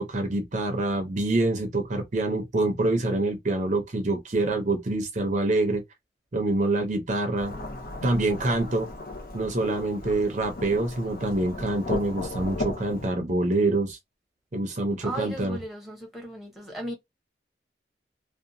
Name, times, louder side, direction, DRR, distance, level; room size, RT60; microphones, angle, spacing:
voice 1, 0.0-5.8 6.3-7.5 8.0-8.9 9.3-14.0 14.5-15.6, right 2 dB, 45° right, 0.6 m, -26 dB
Thunderstorm / Rain, 7.4-13.1, left 2 dB, 55° left, 0.6 m, -36 dB
voice 2, 15.0-16.9, equal, ahead, 0.8 m, -36 dB
2.7 x 2.2 x 2.6 m
head